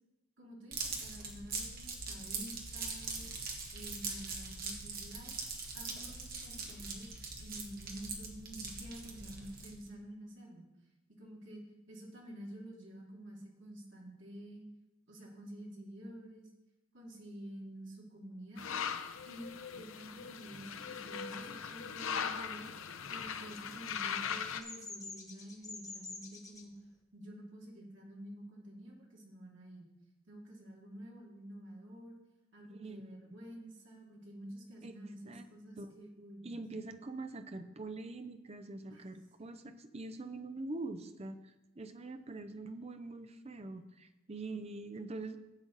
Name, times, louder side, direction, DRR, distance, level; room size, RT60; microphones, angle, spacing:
voice 1, 0.4-3.3 3.7-5.4 5.7-10.6 11.2-11.6 11.9-14.7 15.1-16.5 16.9-18.8 19.3-22.7 23.1-26.7 27.1-29.9 30.3-32.2 32.5-36.6 38.9-39.1, right 1 dB, 60° right, -3 dB, 2.5 m, -49 dB
sound 1, 0.7-9.9, right 4 dB, 45° right, 1.5 m, -42 dB
sound 2, 18.6-24.6, left 7 dB, 75° left, 0.7 m, -40 dB
Bird vocalization bird call bird song, 22.9-26.6, left 3 dB, 15° left, 1.1 m, -48 dB
voice 2, 32.7-33.4 34.8-34.9 35.3-35.5 35.8-35.9 36.4-45.4, right 2 dB, 30° right, 9 dB, 0.6 m, -44 dB
11.5 x 7.7 x 4.0 m, 1.0 s
head